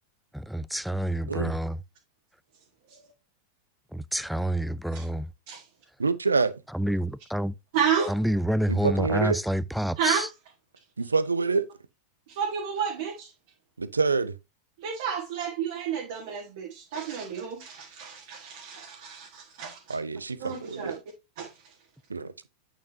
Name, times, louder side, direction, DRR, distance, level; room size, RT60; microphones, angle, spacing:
voice 1, 0.3-1.8 3.9-5.3 6.7-7.5 8.1-10.3, right 1 dB, ahead, 0.3 m, -28 dB
voice 2, 6.0-6.6 8.7-9.4 11.0-11.6 13.8-14.3 19.9-21.0 22.1-22.3, right 4 dB, 75° right, 0.6 m, -26 dB
voice 3, 7.7-8.1 10.0-10.3 12.3-13.3 14.8-20.0 20.4-21.0 21.4-21.5, right 7 dB, 50° right, 1.6 m, -31 dB
8.6 x 6.1 x 2.7 m
figure-of-eight pair, 90°, 0 cm